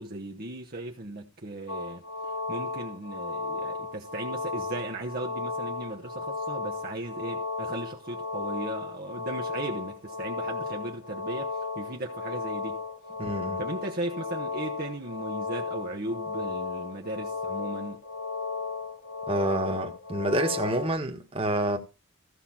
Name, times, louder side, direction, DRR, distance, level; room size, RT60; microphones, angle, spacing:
voice 1, 0.0-12.8 13.6-18.0, right 2 dB, 45° right, 1.0 m, -37 dB
sound 1, 1.7-20.9, left 4 dB, 70° left, 1.4 m, -34 dB
voice 2, 13.2-13.6 19.3-21.8, right 1 dB, 25° right, 1.5 m, -28 dB
15.0 x 5.8 x 6.0 m
head